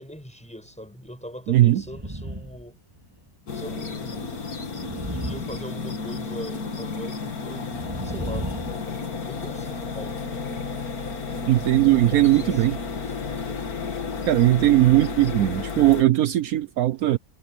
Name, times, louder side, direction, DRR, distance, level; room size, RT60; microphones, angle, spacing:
voice 1, 0.0-2.8 3.5-4.5 5.1-7.8 8.0-10.2 12.0-13.8, equal, 5° left, 5.2 m, -41 dB
voice 2, 1.5-1.8 11.5-12.8 14.3-17.2, right 15 dB, 75° right, 1.2 m, -19 dB
sound 1, 1.8-2.7 3.0-3.2 4.7-6.2 7.7-9.0, right 1 dB, 15° right, 2.5 m, -34 dB
sound 2, 3.5-16.0, left 4 dB, 75° left, 2.5 m, -32 dB
omnidirectional pair, 1.6 m